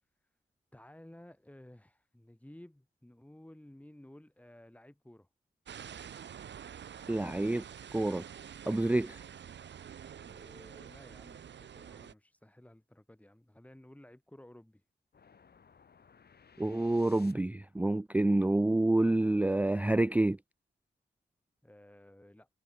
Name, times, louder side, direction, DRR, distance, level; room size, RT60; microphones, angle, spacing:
voice 1, 0.7-5.3 10.2-14.8 21.6-22.5, left 1 dB, 5° left, 6.7 m, -55 dB
sound 1, 5.7-12.1, right 8 dB, 75° right, 1.4 m, -48 dB
voice 2, 7.1-7.6 7.9-8.2 8.7-9.2 16.6-20.4, right 2 dB, 10° right, 0.4 m, -28 dB
sound 2, 15.1-17.8, left 6 dB, 60° left, 4.3 m, -60 dB
cardioid pair, 85°, 19 cm